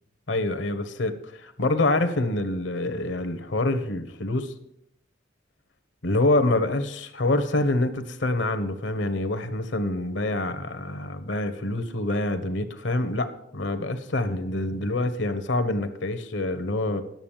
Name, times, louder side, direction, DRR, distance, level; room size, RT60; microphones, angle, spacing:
voice 1, 0.3-4.5 6.0-17.0, left 2 dB, 75° left, 10 dB, 1.2 m, -26 dB
10.5 x 7.1 x 7.4 m, 0.75 s
head